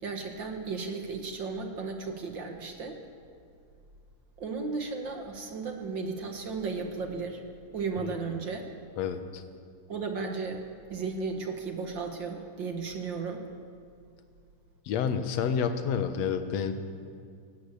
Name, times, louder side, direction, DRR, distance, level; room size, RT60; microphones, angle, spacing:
voice 1, 0.0-3.0 4.4-7.4 7.7-8.6 9.9-10.6 10.9-13.5, right 4 dB, 45° right, 4 dB, 1.7 m, -34 dB
voice 2, 9.0-9.4 14.9-16.7, left 7 dB, 60° left, 8 dB, 2.1 m, -29 dB
18.5 x 17.0 x 8.6 m, 2.3 s
omnidirectional pair, 3.7 m